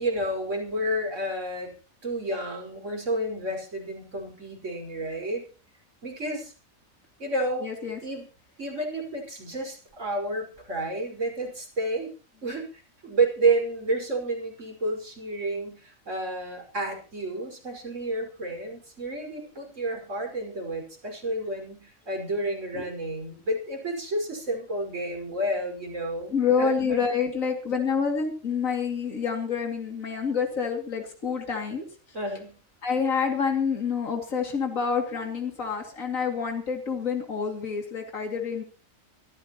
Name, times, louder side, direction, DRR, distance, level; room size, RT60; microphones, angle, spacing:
voice 1, 0.0-1.7 2.0-5.4 6.0-6.5 7.2-7.7 8.0-8.3 8.6-12.1 12.4-27.0 32.1-32.6, right 2 dB, 60° right, 1 dB, 5.9 m, -30 dB
voice 2, 7.6-8.0 22.8-22.9 26.3-31.9 32.8-38.6, left 6 dB, 70° left, 3 dB, 3.0 m, -27 dB
25.0 x 14.5 x 3.0 m, 0.35 s
omnidirectional pair, 1.4 m